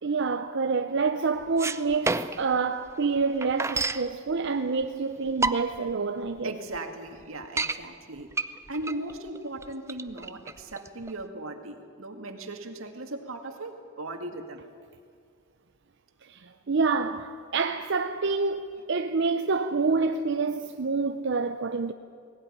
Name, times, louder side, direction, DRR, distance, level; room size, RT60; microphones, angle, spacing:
voice 1, 0.0-6.5 16.2-21.9, right 4 dB, 60° right, 0.7 m, -27 dB
sound 1, 1.4-2.5 2.9-3.0 3.2-4.1 4.8-4.9 5.3-5.9 6.4-6.5 6.7-6.8 7.2-7.8 8.3-11.2, right 3 dB, 15° right, 0.5 m, -29 dB
voice 2, 6.4-8.3 8.7-14.6, right 2 dB, 80° right, 2.1 m, -38 dB
18.5 x 17.5 x 9.9 m
head